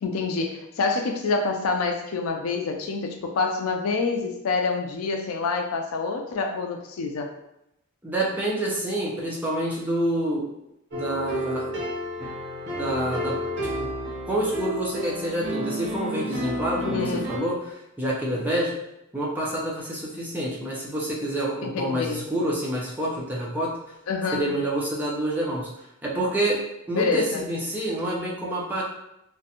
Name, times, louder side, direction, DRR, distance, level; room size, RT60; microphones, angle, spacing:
voice 1, 0.0-7.3 16.8-17.3 21.6-22.3 24.1-24.5 26.9-27.5, left 4 dB, 75° left, 4 dB, 0.4 m, -27 dB
voice 2, 8.0-10.5 10.9-11.7 12.7-13.9 14.3-18.8 19.1-23.7 24.3-26.6 26.9-28.8, right 1 dB, 10° right, -5 dB, 0.5 m, -28 dB
sound 1, 10.9-17.4, equal, 55° right, 0.7 m, -31 dB
2.5 x 2.1 x 2.7 m, 0.85 s
head